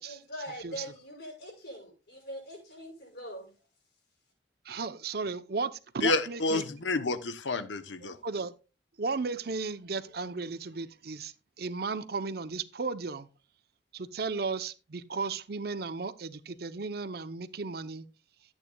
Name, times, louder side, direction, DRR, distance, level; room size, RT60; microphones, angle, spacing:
voice 1, 0.0-3.5, equal, 60° left, 6.1 m, -43 dB
voice 2, 4.7-6.6 8.0-8.5 9.0-13.3 13.9-18.0, right 4 dB, 55° right, 0.7 m, -35 dB
voice 3, 6.0-8.2, left 3 dB, 80° left, 0.9 m, -29 dB
13.5 x 9.0 x 2.3 m
head